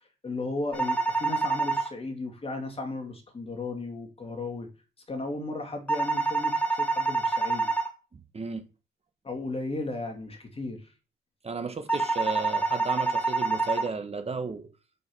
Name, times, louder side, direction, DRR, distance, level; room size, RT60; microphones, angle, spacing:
voice 1, 0.2-4.7 5.1-7.7 9.2-10.9, left 2 dB, 30° left, 2.6 m, -35 dB
sound 1, 0.7-1.9 5.9-7.9 11.9-13.9, right 3 dB, 5° left, 2.9 m, -27 dB
voice 2, 8.1-8.6 11.4-14.7, right 4 dB, 30° right, 1.3 m, -34 dB
7.7 x 5.4 x 6.2 m
cardioid pair, 90°, 20 cm